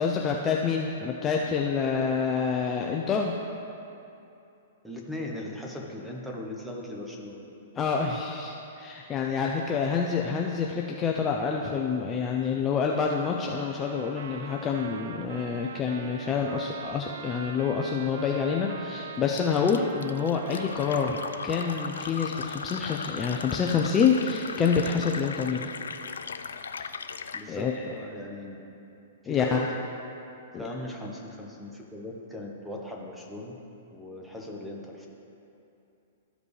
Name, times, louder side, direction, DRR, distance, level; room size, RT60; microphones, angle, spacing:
voice 1, 0.0-3.3 7.8-21.2 21.4-25.7 27.5-27.7 29.3-29.6 30.5-30.6, left 6 dB, 20° left, 0 dB, 0.5 m, -27 dB
voice 2, 4.8-7.4 27.3-28.7 29.2-29.7 30.5-33.6 33.9-35.1, left 1 dB, ahead, -1 dB, 1.1 m, -38 dB
Trumpet, 13.6-22.1, right 6 dB, 70° right, 0.4 m, -43 dB
Fill (with liquid), 19.4-27.5, left 5 dB, 90° left, 0.3 m, -38 dB
13.5 x 5.0 x 3.3 m, 2.8 s
hypercardioid pair, 130°, 0 cm